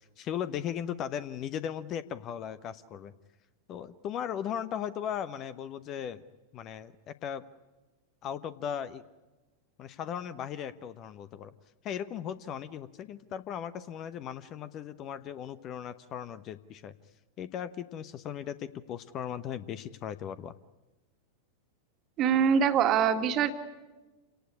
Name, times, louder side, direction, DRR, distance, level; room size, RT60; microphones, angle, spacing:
voice 1, 0.0-3.1 3.7-6.2 6.5-7.4 8.2-9.0 9.8-11.5 11.8-16.9 17.4-20.5, left 9 dB, 35° left, 14 dB, 1.0 m, -37 dB
voice 2, 22.2-23.5, right 7 dB, 35° right, 7 dB, 2.0 m, -24 dB
28.0 x 18.5 x 9.8 m, 1.1 s
figure-of-eight pair, 90°, 0 cm